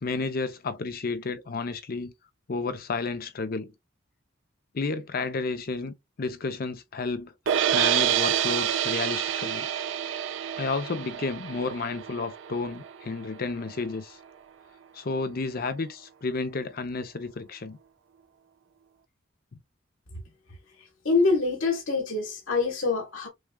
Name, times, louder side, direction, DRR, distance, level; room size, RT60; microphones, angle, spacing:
voice 1, 0.0-2.1 2.5-3.7 4.7-7.3 7.7-9.7 10.6-14.2 14.9-17.8, left 3 dB, 50° left, 0.5 m, -31 dB
sound 1, 7.5-13.6, right 10 dB, 70° right, 0.4 m, -28 dB
voice 2, 21.0-23.3, left 3 dB, 85° left, 1.3 m, -25 dB
6.3 x 2.3 x 2.2 m
head